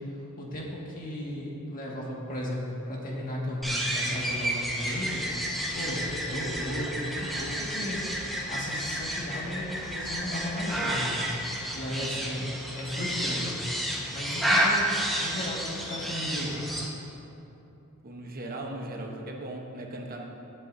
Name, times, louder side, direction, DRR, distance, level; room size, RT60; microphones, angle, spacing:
voice 1, 0.4-5.3 5.7-8.0 8.5-11.3 11.7-13.5 14.1-14.9 15.2-16.6, left 1 dB, 40° left, -4 dB, 1.9 m, -35 dB
sound 1, 3.6-16.9, right 1 dB, ahead, 1.2 m, -31 dB
voice 2, 18.0-20.2, right 1 dB, 40° right, 0 dB, 1.0 m, -38 dB
18.5 x 8.2 x 2.7 m, 3.0 s
head